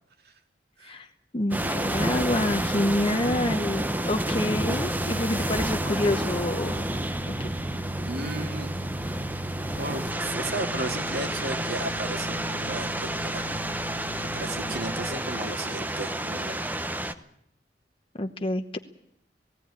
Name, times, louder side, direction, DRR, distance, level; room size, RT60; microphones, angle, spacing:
voice 1, 1.3-6.8 7.3-7.5 18.2-18.8, left 1 dB, 30° left, 5 dB, 0.9 m, -27 dB
sound 1, 1.5-17.1, right 1 dB, 10° right, 0.9 m, -30 dB
sound 2, 4.4-15.1, equal, 85° right, 1.4 m, -37 dB
voice 2, 8.0-8.7 9.8-13.6 14.3-16.6, right 2 dB, 60° right, 5 dB, 2.5 m, -35 dB
17.5 x 17.0 x 9.6 m, 0.74 s
head